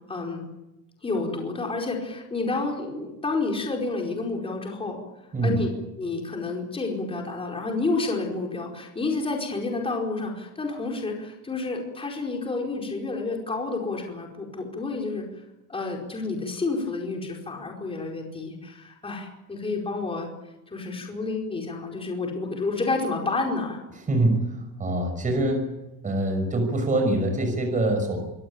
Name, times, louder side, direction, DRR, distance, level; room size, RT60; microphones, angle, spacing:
voice 1, 0.1-0.4 1.0-5.0 5.4-5.7 6.0-15.3 15.7-20.3 20.7-23.8, left 3 dB, 15° left, 0 dB, 4.8 m, -29 dB
voice 2, 24.1-25.7 26.0-28.2, right 1 dB, 20° right, 4 dB, 6.2 m, -24 dB
26.0 x 18.5 x 8.8 m, 0.99 s
cardioid pair, 150°, 40 cm